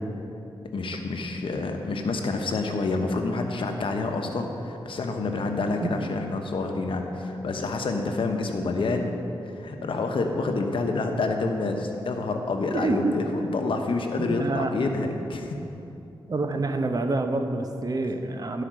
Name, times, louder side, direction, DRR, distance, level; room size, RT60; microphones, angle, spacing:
voice 1, 0.7-9.2 9.5-15.6, left 3 dB, 65° left, 4 dB, 0.9 m, -28 dB
voice 2, 5.8-6.1 12.7-13.2 14.2-14.7 16.3-18.6, right 3 dB, 40° right, 6 dB, 0.8 m, -27 dB
11.5 x 5.0 x 6.2 m, 2.9 s
cardioid pair, 60°, 9 cm